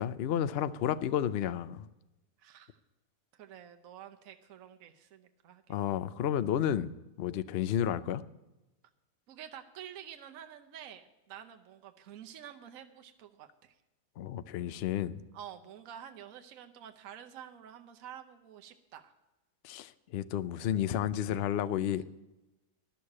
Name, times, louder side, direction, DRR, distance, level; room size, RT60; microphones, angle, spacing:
voice 1, 0.0-1.9 5.7-6.9 7.2-8.2 14.2-15.2 19.6-22.0, left 10 dB, 90° left, 15 dB, 0.5 m, -31 dB
voice 2, 2.4-2.8 3.3-5.8 9.3-13.7 15.3-19.1, right 9 dB, 65° right, 5 dB, 1.2 m, -49 dB
12.0 x 6.4 x 8.5 m, 1.0 s
omnidirectional pair, 1.7 m